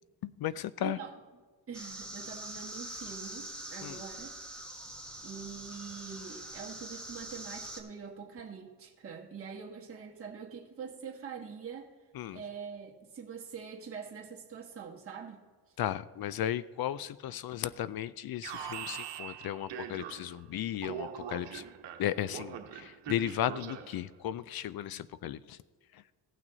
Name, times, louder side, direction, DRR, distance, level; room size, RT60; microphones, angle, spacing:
voice 1, 0.2-1.0 3.8-4.0 12.2-12.4 15.8-21.6 22.0-25.6, left 11 dB, 60° left, 17 dB, 0.5 m, -35 dB
voice 2, 0.8-1.2 1.7-4.3 5.2-11.9 12.3-15.4, right 6 dB, 30° right, -2 dB, 1.4 m, -44 dB
sound 1, 1.7-7.8, right 1 dB, ahead, 1.6 m, -44 dB
Alarm, 18.4-20.4 20.8-24.1, right 9 dB, 85° right, 1.1 m, -42 dB
17.0 x 6.1 x 3.9 m, 1.5 s
cardioid pair, 95°, 42 cm